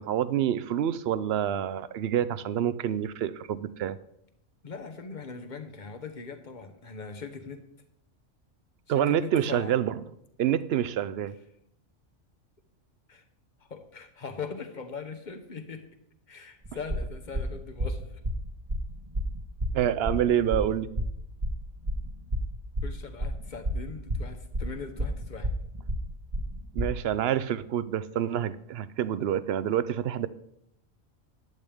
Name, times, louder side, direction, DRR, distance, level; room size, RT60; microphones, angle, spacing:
voice 1, 0.0-4.0 8.9-10.0 10.4-11.4 19.7-20.9 26.7-30.3, right 10 dB, 60° right, 15 dB, 0.8 m, -27 dB
voice 2, 4.6-7.6 8.9-9.7 13.1-13.2 13.7-15.9 16.3-18.1 22.8-25.5, left 5 dB, 40° left, 6 dB, 1.2 m, -40 dB
sound 1, 16.6-27.0, equal, 30° right, 1.1 m, -31 dB
14.5 x 10.5 x 3.5 m, 0.77 s
omnidirectional pair, 1.3 m